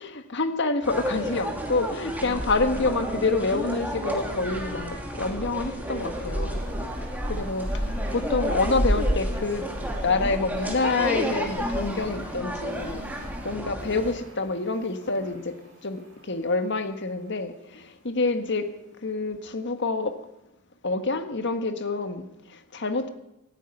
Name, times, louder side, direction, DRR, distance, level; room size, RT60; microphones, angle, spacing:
voice 1, 0.0-6.6 7.3-9.7 10.0-15.5 15.8-18.7 19.0-20.2 20.8-23.1, left 3 dB, 55° left, 8 dB, 1.5 m, -27 dB
sound 1, 0.8-14.1, equal, 10° right, 2.5 m, -30 dB
sound 2, 2.7-3.4 3.9-18.6, right 1 dB, 65° right, 7.6 m, -50 dB
18.5 x 14.5 x 5.4 m, 0.90 s
head